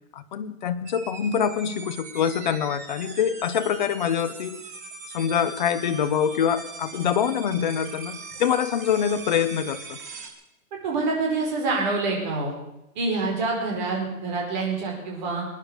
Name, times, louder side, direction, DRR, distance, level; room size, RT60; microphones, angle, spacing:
voice 1, 0.1-4.6 5.1-10.0, left 8 dB, 35° left, 10 dB, 0.9 m, -25 dB
sound 1, 0.9-10.3, right 4 dB, 10° right, 0.6 m, -41 dB
voice 2, 10.7-12.5 12.9-15.5, right 3 dB, 35° right, -1 dB, 4.8 m, -26 dB
20.5 x 10.0 x 6.4 m, 0.90 s
hypercardioid pair, 175°, 42 cm